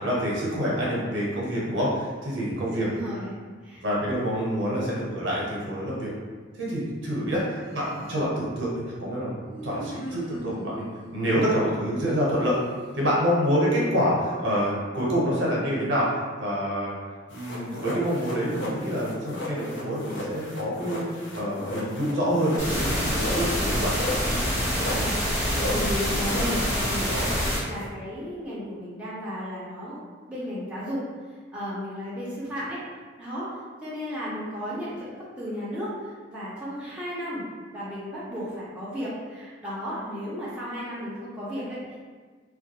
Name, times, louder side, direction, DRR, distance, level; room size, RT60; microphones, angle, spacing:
voice 1, 0.0-2.9 3.8-6.1 6.5-10.8 11.1-12.6 12.9-16.1 16.4-16.9 17.3-21.0 21.3-24.0, equal, 70° right, -5 dB, 0.7 m, -27 dB
voice 2, 2.7-3.8 24.8-25.2 25.6-27.3 27.7-30.0 30.3-31.0 31.3-32.8 33.2-37.4 37.7-42.0, equal, 5° right, -9 dB, 0.5 m, -34 dB
Human voice, 7.4-8.3 9.5-12.2, equal, 40° left, 1.0 m, -42 dB
sound 1, 17.3-27.9, left 1 dB, 70° left, 0.5 m, -36 dB
sound 2, 22.6-27.6, equal, 15° left, 0.8 m, -26 dB
2.2 x 2.2 x 2.7 m, 1.5 s
head